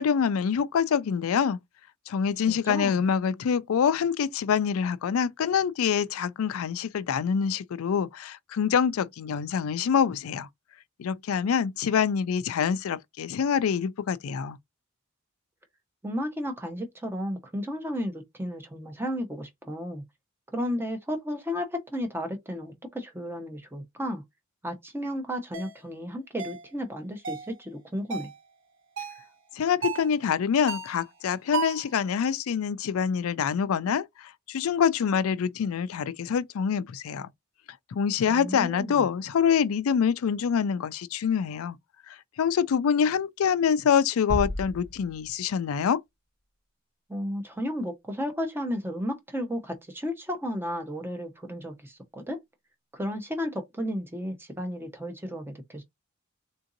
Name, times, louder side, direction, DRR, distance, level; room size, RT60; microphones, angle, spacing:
voice 1, 0.0-1.6 2.1-10.5 11.0-14.6 29.5-37.3 37.9-41.8 42.1-46.0, left 7 dB, 80° left, 0.4 m, -26 dB
voice 2, 2.5-3.0 16.0-20.0 20.5-24.2 24.6-28.3 38.3-39.1 47.1-52.4 52.9-55.8, equal, 10° right, 0.8 m, -33 dB
sound 1, 25.5-25.7 26.4-26.6 27.2-27.5 28.1-28.4 29.0-29.3 29.8-30.1 30.7-31.0 31.5-31.9, right 6 dB, 60° right, 0.7 m, -33 dB
sound 2, 44.3-45.7, left 1 dB, 15° left, 1.0 m, -33 dB
3.7 x 2.6 x 2.6 m
head